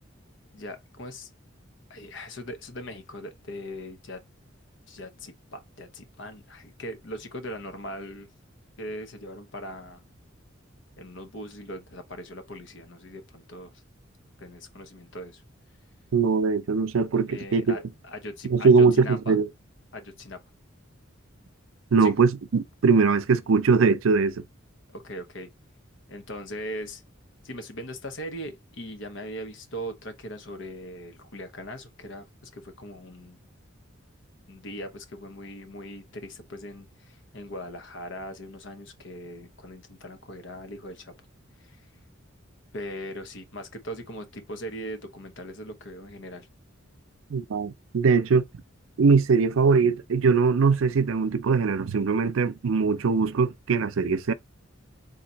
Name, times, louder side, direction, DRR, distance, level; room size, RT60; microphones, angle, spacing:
voice 1, 0.5-1.3 1.9-4.2 4.9-8.3 8.8-10.0 11.0-13.7 14.4-15.4 17.3-19.4 19.9-20.4 22.0-22.1 24.9-25.5 26.1-27.0 27.4-33.4 34.5-41.1 42.7-46.5, equal, 65° left, 1.1 m, -39 dB
voice 2, 16.1-17.8 18.5-19.5 21.9-24.4 47.3-48.4 49.0-54.3, right 5 dB, 85° right, 0.5 m, -21 dB
4.0 x 3.0 x 4.0 m
head